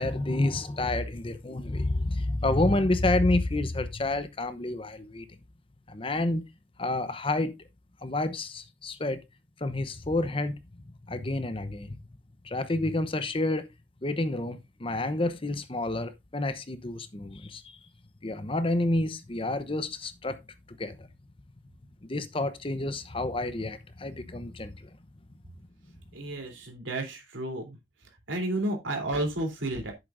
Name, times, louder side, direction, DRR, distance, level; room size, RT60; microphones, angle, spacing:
voice 1, 0.0-5.3 5.9-6.4 6.8-7.5 8.0-9.2 9.6-10.6 11.1-12.0 12.4-13.7 14.0-17.8 18.2-20.4 20.7-21.1 22.0-25.0, left 2 dB, 30° left, 0.8 m, -29 dB
voice 2, 26.1-27.8 28.3-29.9, right 1 dB, 85° right, 3.4 m, -31 dB
11.0 x 8.1 x 2.6 m
head